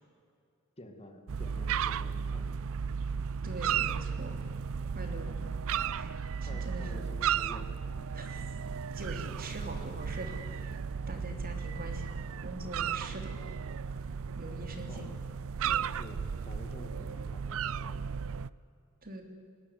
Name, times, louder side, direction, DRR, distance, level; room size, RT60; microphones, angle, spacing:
voice 1, 0.8-2.6 6.4-7.8 11.3-11.5 14.9-15.1 15.9-18.1, left 1 dB, 30° left, 5 dB, 2.2 m, -49 dB
sound 1, 1.3-18.5, right 7 dB, 65° right, 0.5 m, -35 dB
voice 2, 3.4-4.3 4.9-5.4 5.8-7.0 8.1-8.5 8.9-10.8 11.1-13.4 14.3-15.1 15.6-15.9 19.0-19.2, right 1 dB, 45° right, 4 dB, 3.2 m, -43 dB
20.5 x 19.5 x 9.4 m, 2.5 s
head